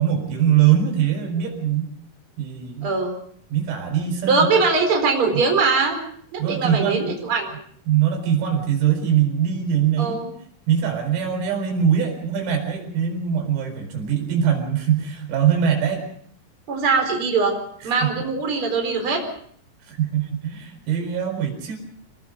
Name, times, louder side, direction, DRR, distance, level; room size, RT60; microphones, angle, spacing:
voice 1, 0.0-1.9 2.4-2.9 3.5-4.5 6.4-7.2 7.9-10.2 10.7-16.0 17.8-18.2 19.9-21.8, right 9 dB, 90° right, 3 dB, 7.3 m, -22 dB
voice 2, 2.8-3.2 4.3-6.0 6.3-7.5 10.0-10.3 16.7-17.5 17.8-19.2, right 4 dB, 25° right, 3 dB, 4.6 m, -21 dB
26.5 x 19.0 x 5.2 m, 0.62 s
omnidirectional pair, 5.9 m